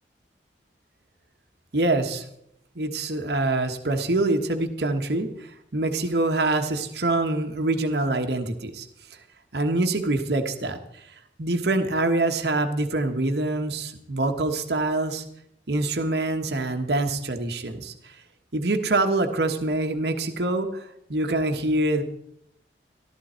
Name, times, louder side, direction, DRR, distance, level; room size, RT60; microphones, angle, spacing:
voice 1, 1.7-2.2 2.7-8.9 9.5-11.1 11.4-15.2 15.7-18.2 18.5-22.0, right 2 dB, 65° right, 5 dB, 1.3 m, -25 dB
14.0 x 13.5 x 4.4 m, 0.76 s
head